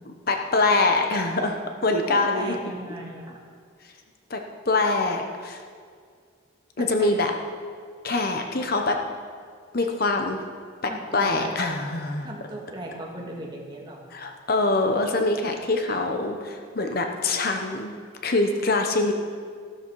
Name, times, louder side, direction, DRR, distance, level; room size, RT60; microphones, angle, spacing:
voice 1, 0.3-2.6 4.3-4.4 4.7-5.6 6.8-7.3 8.0-9.0 9.7-10.4 11.1-12.3 14.1-17.9 18.2-19.1, left 3 dB, 50° left, 4 dB, 1.0 m, -24 dB
voice 2, 2.1-3.4 6.8-7.1 10.9-11.6 12.2-14.1, right 1 dB, 20° right, -1 dB, 1.9 m, -37 dB
14.0 x 13.0 x 4.8 m, 2.1 s
head